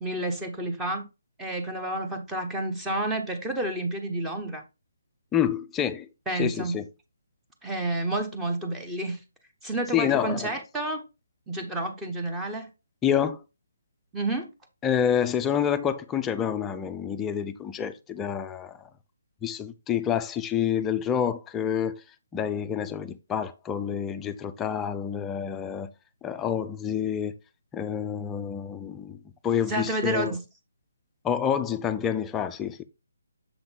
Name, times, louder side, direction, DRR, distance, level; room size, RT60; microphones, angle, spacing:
voice 1, 0.0-1.1 1.4-4.6 6.3-6.8 7.6-9.2 9.6-11.1 11.5-12.7 14.1-14.5 29.7-30.4, right 2 dB, 10° right, 1.1 m, -30 dB
voice 2, 5.3-6.1 6.3-6.8 9.9-10.5 13.0-13.4 14.8-18.8 19.4-22.0 22.3-25.9 26.2-27.3 27.7-29.2 29.4-30.3 31.2-32.8, left 8 dB, 10° left, 0.5 m, -28 dB
7.0 x 3.8 x 3.7 m
figure-of-eight pair, 150°, 0 cm